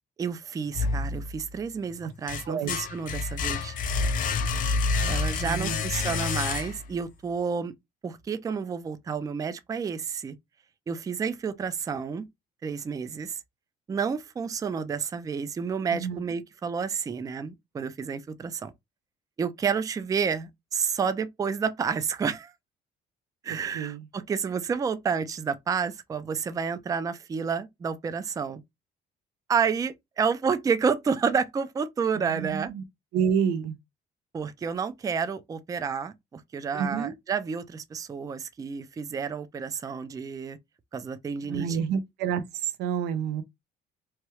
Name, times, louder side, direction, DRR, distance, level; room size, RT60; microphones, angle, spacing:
voice 1, 0.2-3.8 5.1-7.7 8.0-10.4 10.9-12.2 12.6-13.4 13.9-18.7 19.4-22.5 23.4-28.6 29.5-32.7 34.3-40.6 40.9-41.8, right 6 dB, 20° right, 0.3 m, -30 dB
sound 1, 0.7-1.6 2.0-7.0, left 4 dB, 55° left, 0.5 m, -28 dB
voice 2, 2.5-2.8 5.0-5.1 5.4-5.8 15.9-16.2 23.5-24.0 32.2-32.8 33.1-33.8 36.7-37.1 41.5-43.4, right 7 dB, 80° right, 0.5 m, -29 dB
2.9 x 2.3 x 3.0 m
cardioid pair, 110°, 17 cm